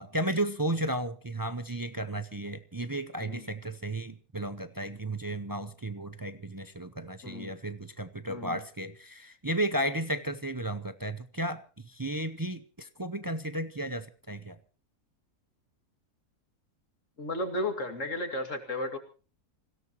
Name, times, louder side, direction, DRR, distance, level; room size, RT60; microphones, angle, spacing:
voice 1, 0.0-14.6, right 1 dB, 30° right, 11 dB, 0.4 m, -34 dB
voice 2, 7.2-7.6 8.3-8.6 17.2-19.0, left 1 dB, 55° left, 6 dB, 2.6 m, -34 dB
26.0 x 17.0 x 3.0 m, 0.36 s
omnidirectional pair, 1.6 m